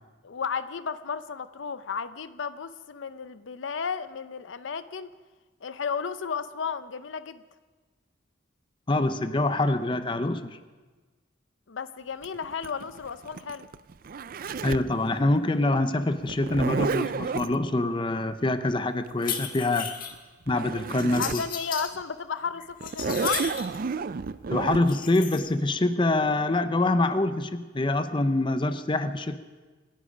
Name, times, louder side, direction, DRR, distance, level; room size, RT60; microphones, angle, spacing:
voice 1, 0.2-5.1 5.6-7.4 11.7-13.7 21.2-23.5, left 6 dB, 80° left, 13 dB, 0.6 m, -33 dB
voice 2, 8.9-10.6 14.6-19.9 20.5-21.4 24.5-29.4, left 2 dB, 25° left, 10 dB, 0.6 m, -25 dB
Zipper (clothing), 12.2-14.9 16.3-17.5 20.1-20.2 20.5-21.5 21.9-22.0 22.8-24.8, right 4 dB, 50° right, 0.4 m, -31 dB
sound 1, 19.1-20.2 21.0-21.9 22.4-23.8 24.8-25.4, left 8 dB, 50° left, 1.5 m, -35 dB
26.5 x 10.5 x 5.1 m, 1.3 s
head